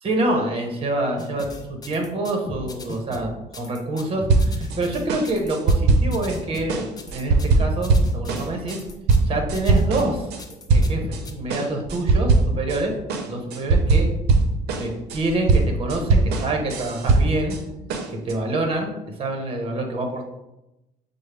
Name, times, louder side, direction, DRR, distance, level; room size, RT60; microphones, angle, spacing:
voice 1, 0.0-8.8 9.3-10.3 10.7-12.9 13.3-14.1 14.8-17.6 18.1-20.3, right 2 dB, 35° right, 3 dB, 0.9 m, -26 dB
sound 1, 1.2-11.3, left 2 dB, 25° left, 0.5 m, -37 dB
sound 2, 4.3-4.8 5.1-6.4 6.7-10.4 10.7-11.2 11.5-12.8 13.1-17.6 17.9-18.3, right 3 dB, 75° right, 0.6 m, -20 dB
6.2 x 2.1 x 3.3 m, 0.94 s
cardioid pair, 110°, 17 cm